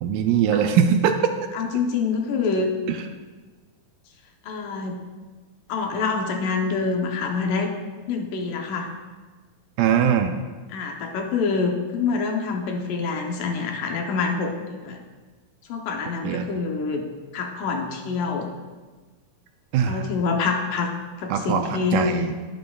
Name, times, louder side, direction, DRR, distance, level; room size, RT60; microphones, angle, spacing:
voice 1, 0.0-1.1 2.9-3.0 9.8-10.4 16.2-16.5 19.7-20.1 21.3-22.3, right 8 dB, 80° right, 6 dB, 2.1 m, -21 dB
voice 2, 1.5-2.7 4.4-5.0 5.7-7.7 8.1-8.9 10.7-15.0 15.7-17.0 17.3-18.5 19.9-22.2, left 4 dB, 75° left, 2 dB, 2.3 m, -26 dB
11.5 x 11.0 x 2.3 m, 1.4 s
omnidirectional pair, 4.1 m